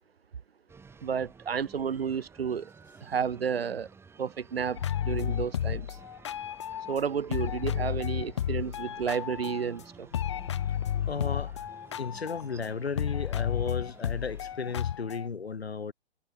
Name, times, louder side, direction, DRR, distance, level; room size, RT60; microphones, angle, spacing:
sound 1, 0.7-14.7, right 5 dB, 10° right, 5.8 m, -54 dB
voice 1, 1.0-2.7 3.0-3.9 4.2-6.0 6.9-10.1, right 7 dB, 65° right, 2.4 m, -31 dB
sound 2, 4.8-7.0 7.3-9.8 10.1-15.3, left 10 dB, 30° left, 0.4 m, -32 dB
voice 2, 11.1-11.5 12.0-15.9, left 5 dB, 75° left, 5.1 m, -34 dB
figure-of-eight pair, 135°, 32 cm